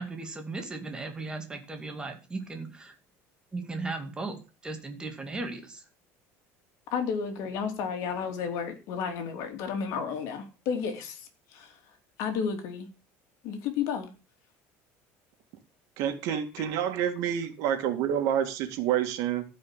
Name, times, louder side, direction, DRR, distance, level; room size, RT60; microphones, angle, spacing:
voice 1, 0.0-2.9 3.5-5.8, right 3 dB, 15° right, 5 dB, 2.2 m, -37 dB
voice 2, 6.9-11.8 12.2-12.9 13.4-14.1 16.3-16.7, left 6 dB, 60° left, 5 dB, 3.1 m, -32 dB
voice 3, 16.0-19.4, right 10 dB, 60° right, 7 dB, 2.2 m, -28 dB
15.0 x 5.4 x 7.4 m, 0.32 s
cardioid pair, 160°, 6 cm